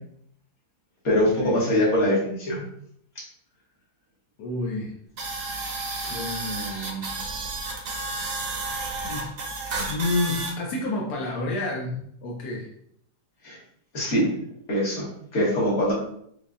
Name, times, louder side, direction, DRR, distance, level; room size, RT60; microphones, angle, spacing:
voice 1, 1.0-2.6 13.4-13.6 13.9-14.3 14.7-15.1 15.3-15.9, equal, 50° left, -5 dB, 1.5 m, -22 dB
voice 2, 4.4-5.0 6.0-7.1 9.0-9.3 9.8-12.7, left 2 dB, 80° left, -2 dB, 1.2 m, -29 dB
sound 1, 5.2-10.5, right 3 dB, 60° right, 0.6 m, -31 dB
5.0 x 2.2 x 2.4 m, 0.69 s
omnidirectional pair, 1.7 m